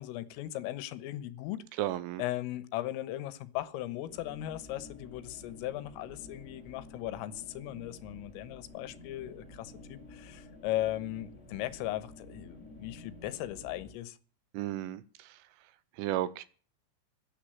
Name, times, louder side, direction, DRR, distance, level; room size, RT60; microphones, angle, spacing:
voice 1, 0.0-1.6 2.2-14.2, left 14 dB, 80° left, 3.7 m, -37 dB
voice 2, 1.8-2.2 14.5-15.4 16.0-16.4, right 14 dB, 80° right, 3.1 m, -34 dB
sound 1, 4.0-13.9, left 2 dB, 15° left, 3.7 m, -51 dB
15.5 x 10.0 x 9.0 m
omnidirectional pair, 6.0 m